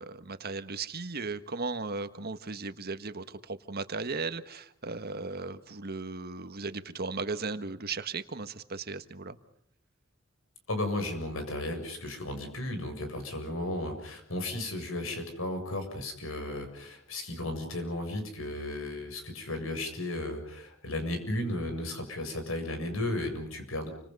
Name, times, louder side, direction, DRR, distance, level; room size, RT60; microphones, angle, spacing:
voice 1, 0.0-9.4, right 4 dB, 50° right, 10 dB, 1.6 m, -36 dB
voice 2, 10.7-23.9, left 1 dB, 80° left, 6 dB, 7.4 m, -34 dB
29.5 x 26.0 x 5.5 m, 0.68 s
head